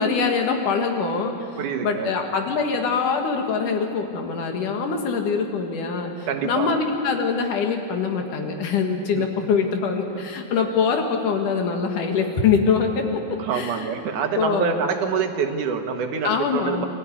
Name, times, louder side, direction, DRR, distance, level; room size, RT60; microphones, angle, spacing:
voice 1, 0.0-1.3 1.8-13.2 13.5-13.9 14.4-14.8 16.2-16.9, left 5 dB, 90° left, 3 dB, 3.4 m, -23 dB
voice 2, 1.6-2.1 6.3-6.7 9.1-9.2 13.4-16.9, right 6 dB, 80° right, 6 dB, 2.8 m, -26 dB
24.0 x 14.0 x 9.8 m, 2.5 s
omnidirectional pair, 3.6 m